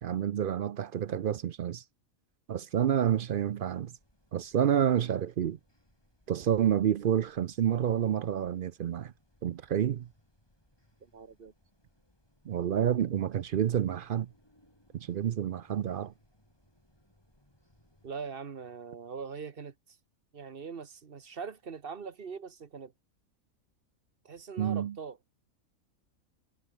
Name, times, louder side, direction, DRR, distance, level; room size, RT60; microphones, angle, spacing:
voice 1, 0.0-1.8 2.5-3.9 4.3-5.6 6.3-9.1 9.4-10.1 12.5-14.3 14.9-16.1 24.6-25.0, right 9 dB, 65° right, 0.5 m, -29 dB
sound 1, 3.5-18.1, left 1 dB, 15° left, 5.9 m, -67 dB
voice 2, 11.0-11.5 18.0-20.0 20.3-22.9 24.2-25.2, right 5 dB, 45° right, 1.2 m, -42 dB
omnidirectional pair, 1.5 m